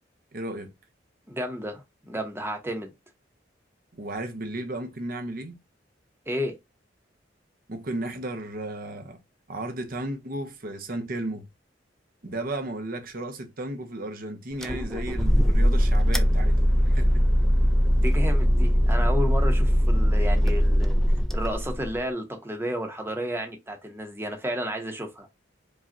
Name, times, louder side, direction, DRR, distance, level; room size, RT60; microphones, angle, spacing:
voice 1, 0.3-0.7 3.9-5.6 7.7-9.2 9.5-11.5 12.2-17.2, right 1 dB, 50° right, 0.8 m, -34 dB
voice 2, 1.3-2.9 6.3-6.5 17.9-21.0 21.3-25.3, equal, 15° right, 0.9 m, -32 dB
sound 1, 14.6-22.0, equal, ahead, 0.3 m, -21 dB
5.0 x 2.4 x 2.6 m
head